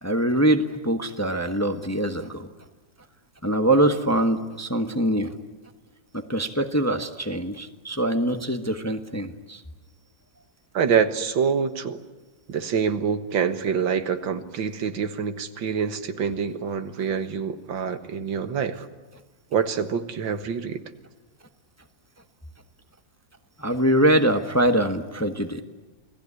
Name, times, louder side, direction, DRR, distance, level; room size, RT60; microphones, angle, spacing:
voice 1, 0.0-2.5 3.4-5.3 6.1-9.6 23.6-25.6, right 1 dB, 10° left, 6 dB, 1.0 m, -23 dB
voice 2, 10.7-12.0 12.5-18.9 19.5-20.8, right 6 dB, 90° right, 8 dB, 2.1 m, -26 dB
28.5 x 18.5 x 9.8 m, 1.2 s
omnidirectional pair, 2.0 m